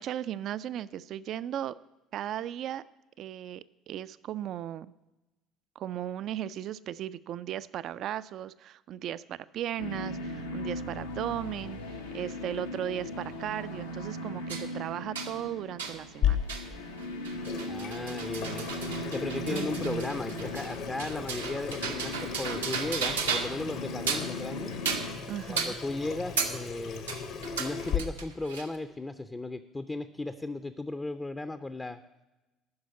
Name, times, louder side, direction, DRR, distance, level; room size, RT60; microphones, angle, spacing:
voice 1, 0.0-1.8 2.1-2.8 3.2-4.9 5.8-16.4 19.5-20.1 25.3-25.8, right 11 dB, 50° right, 17 dB, 0.3 m, -36 dB
sound 1, 9.8-25.2, left 1 dB, 85° left, 0.9 m, -39 dB
sound 2, 14.5-14.7 15.1-15.3 15.8-16.0 16.5-16.7 17.0-23.7 23.9-24.4 24.8-25.2 25.6-25.8 26.4-26.6 27.1-28.8, right 5 dB, 80° right, 0.8 m, -34 dB
Water tap faucet / Sink (filling or washing), 16.2-28.0, left 8 dB, 60° left, 1.1 m, -36 dB
voice 2, 17.7-18.7 19.1-24.7 25.5-27.0 27.6-32.0, left 2 dB, 20° left, 10 dB, 0.5 m, -36 dB
9.6 x 6.3 x 8.2 m, 1.0 s
figure-of-eight pair, 55°, 0 cm